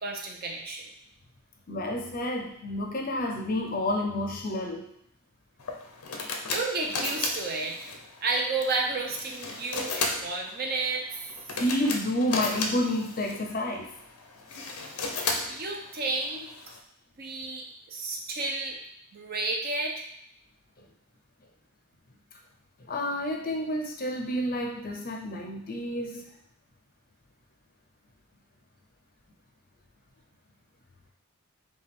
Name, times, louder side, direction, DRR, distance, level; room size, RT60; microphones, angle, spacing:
voice 1, 0.0-0.9 6.5-7.9 8.2-11.0 15.5-16.5 17.2-18.8 19.1-20.1, right 3 dB, 45° right, 0 dB, 0.6 m, -31 dB
voice 2, 1.7-4.9 11.6-13.9 22.9-26.3, left 1 dB, 40° left, 1 dB, 0.6 m, -29 dB
sound 1, 5.6-16.8, left 3 dB, 90° left, 0.6 m, -35 dB
5.1 x 2.3 x 3.5 m, 0.72 s
head